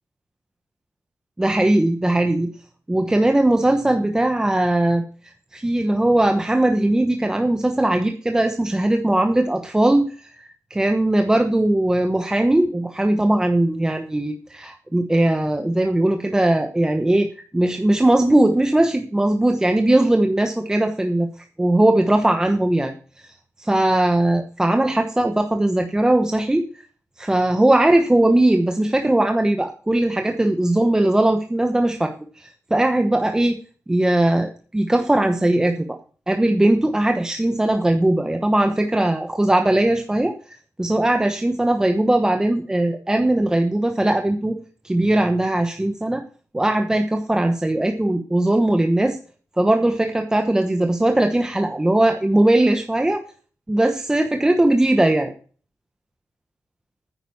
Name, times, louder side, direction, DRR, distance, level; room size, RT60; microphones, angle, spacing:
voice 1, 1.4-2.5 2.9-5.0 5.5-21.3 21.6-26.8 27.2-33.6 33.9-36.0 36.3-44.6 44.8-46.2 46.5-49.2 49.6-53.2 53.7-55.3, right 1 dB, 10° right, 5 dB, 1.0 m, -19 dB
10.0 x 9.1 x 7.1 m, 0.41 s
wide cardioid pair, 155°, 6 cm